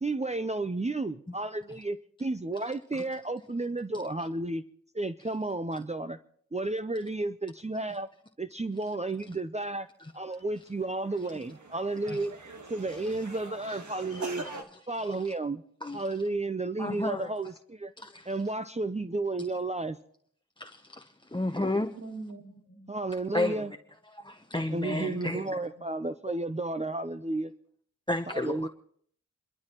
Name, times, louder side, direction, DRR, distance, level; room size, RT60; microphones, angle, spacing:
voice 1, 0.0-4.6 4.9-6.2 6.5-8.1 8.4-9.9 10.1-12.3 12.7-14.4 14.9-15.6 15.9-17.9 18.3-20.0 22.9-23.7 24.7-27.5 28.3-28.7, right 2 dB, 25° right, 0.6 m, -32 dB
sound 1, 10.3-10.4 10.8-14.6, right 3 dB, 80° right, 1.6 m, -43 dB
voice 2, 14.1-14.5 15.8-16.0 16.8-17.3 18.0-18.3 20.6-21.9 23.3-23.6 24.2-25.5 28.1-28.7, left 2 dB, 15° left, 0.8 m, -32 dB
voice 3, 21.9-22.9 25.0-26.0, right 2 dB, 60° right, 5.2 m, -44 dB
28.5 x 12.5 x 3.0 m
wide cardioid pair, 40°, 30 cm